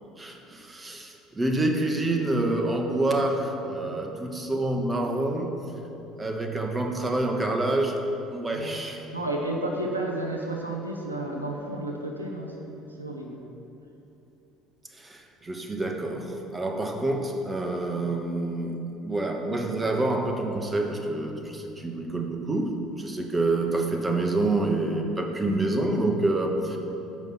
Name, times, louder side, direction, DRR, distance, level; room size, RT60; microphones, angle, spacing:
voice 1, 0.2-5.5 6.2-8.0 8.3-9.0 15.0-18.8 19.0-26.8, right 2 dB, 20° right, 3 dB, 0.9 m, -27 dB
voice 2, 8.5-8.8 9.1-13.5, right 1 dB, 85° right, 0 dB, 0.6 m, -32 dB
7.1 x 5.3 x 6.0 m, 2.9 s
figure-of-eight pair, 55°, 0 cm